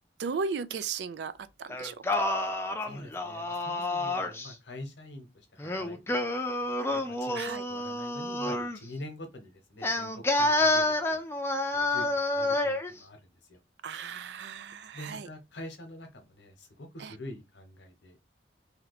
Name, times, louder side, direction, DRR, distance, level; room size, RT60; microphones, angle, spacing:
voice 1, 0.2-1.3 1.6-2.2 7.3-7.6 13.8-15.3 17.0-17.1, right 5 dB, 75° right, 0.4 m, -35 dB
Singing, 1.7-4.5 5.6-8.8 9.8-12.9, left 2 dB, 15° left, 0.4 m, -29 dB
voice 2, 2.8-5.3 5.5-6.1 6.9-11.2 11.7-13.6 14.9-18.2, left 1 dB, 85° left, 0.9 m, -45 dB
2.8 x 2.2 x 3.9 m
head